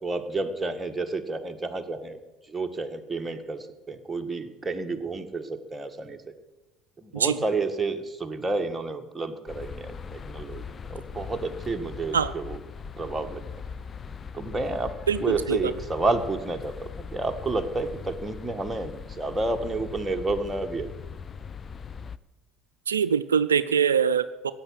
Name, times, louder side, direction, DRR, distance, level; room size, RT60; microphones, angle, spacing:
voice 1, 0.0-2.2 2.5-6.3 7.0-12.6 13.0-13.4 14.3-14.9 15.2-20.9, right 3 dB, 15° right, 5 dB, 1.8 m, -30 dB
sound 1, 9.5-22.2, left 6 dB, 30° left, 0.6 m, -40 dB
voice 2, 15.1-15.7 22.9-24.5, right 7 dB, 85° right, 14 dB, 0.4 m, -23 dB
16.0 x 8.3 x 9.5 m, 1.1 s
hypercardioid pair, 65°, 0 cm